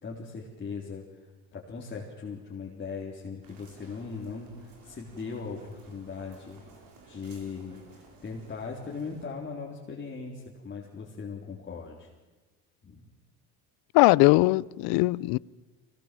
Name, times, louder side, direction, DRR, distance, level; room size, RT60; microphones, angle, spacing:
voice 1, 0.0-6.6 7.0-12.1 12.8-13.0, left 5 dB, 30° left, 3.8 m, -39 dB
sound 1, 3.4-9.3, right 4 dB, 65° right, 5.3 m, -55 dB
voice 2, 13.9-15.4, left 22 dB, 75° left, 0.6 m, -20 dB
24.0 x 19.0 x 7.7 m
cardioid pair, 105°, 37 cm